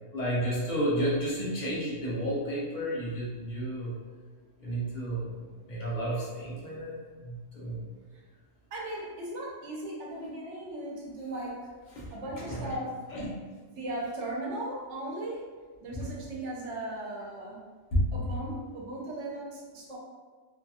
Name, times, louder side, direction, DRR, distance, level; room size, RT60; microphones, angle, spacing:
voice 1, 0.1-3.9 4.6-5.3 5.7-7.8 12.0-12.1 12.4-12.7 13.1-13.3 17.9-18.0, equal, 45° left, -6 dB, 0.7 m, -31 dB
voice 2, 8.7-11.8 12.1-13.3 13.6-15.5 15.8-17.6 18.1-20.0, right 1 dB, 75° right, -4 dB, 1.0 m, -37 dB
2.6 x 2.3 x 2.6 m, 1.5 s
omnidirectional pair, 1.2 m